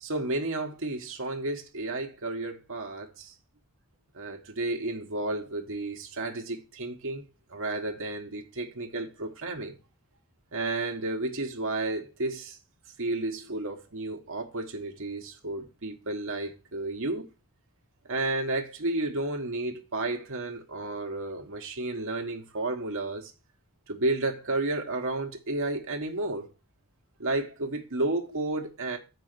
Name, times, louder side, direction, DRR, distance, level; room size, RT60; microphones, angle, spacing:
voice 1, 0.0-3.3 4.1-9.8 10.5-12.6 13.0-17.3 18.1-23.3 23.9-26.5 27.2-29.0, right 2 dB, 65° right, 1.2 m, -32 dB
6.9 x 4.9 x 6.6 m
head